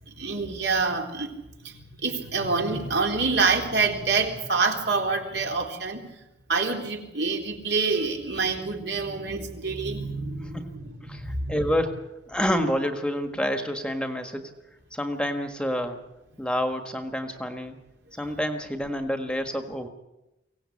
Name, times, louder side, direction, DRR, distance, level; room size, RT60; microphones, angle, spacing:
voice 1, 0.1-1.3 1.6-6.0 6.5-11.6 18.2-18.3, right 4 dB, 65° right, 2 dB, 3.7 m, -27 dB
voice 2, 10.5-14.5 14.9-16.0 16.4-17.8 18.1-19.9, equal, 5° left, 6 dB, 1.6 m, -28 dB
24.0 x 17.5 x 8.6 m, 0.94 s
head